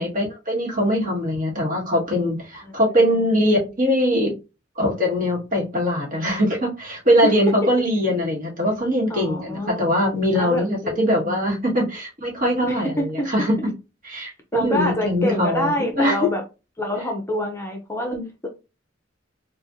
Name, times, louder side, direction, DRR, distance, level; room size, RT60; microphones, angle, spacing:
voice 1, 0.0-4.4 4.7-13.7 14.0-16.3 18.1-18.2, equal, 45° right, 1.6 m, -22 dB
voice 2, 9.1-9.8 10.4-11.5 12.7-13.5 14.2-16.4 16.8-18.2, left 1 dB, 15° left, 0.6 m, -26 dB
4.3 x 2.4 x 2.6 m
head